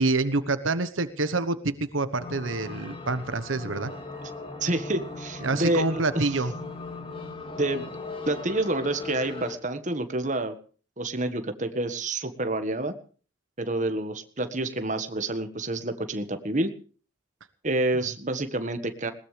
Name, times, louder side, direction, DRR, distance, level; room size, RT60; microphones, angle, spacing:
voice 1, 0.0-3.9 5.4-6.5, right 3 dB, 80° right, 12 dB, 1.2 m, -27 dB
sound 1, 2.2-9.6, left 3 dB, 30° left, 2.4 m, -38 dB
voice 2, 4.6-6.2 7.6-7.9 8.3-10.6 11.0-12.9 13.6-16.7 17.6-19.1, right 2 dB, 40° right, 8 dB, 1.6 m, -28 dB
20.5 x 19.0 x 3.4 m, 0.39 s
head